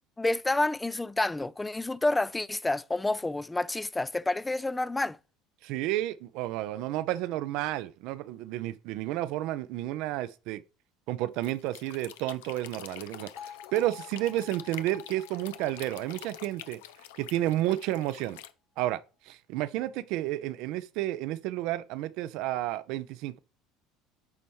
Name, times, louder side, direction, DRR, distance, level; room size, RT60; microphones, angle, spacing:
voice 1, 0.2-5.2, left 2 dB, 15° left, 0.4 m, -29 dB
voice 2, 5.6-10.6 11.1-16.8 17.2-18.4 18.8-23.4, right 15 dB, 65° right, 0.5 m, -31 dB
sound 1, 11.3-18.5, left 12 dB, 75° left, 0.5 m, -47 dB
Bell, 13.4-17.4, left 8 dB, 45° left, 1.9 m, -50 dB
10.5 x 4.3 x 3.1 m
hypercardioid pair, 70°, 0 cm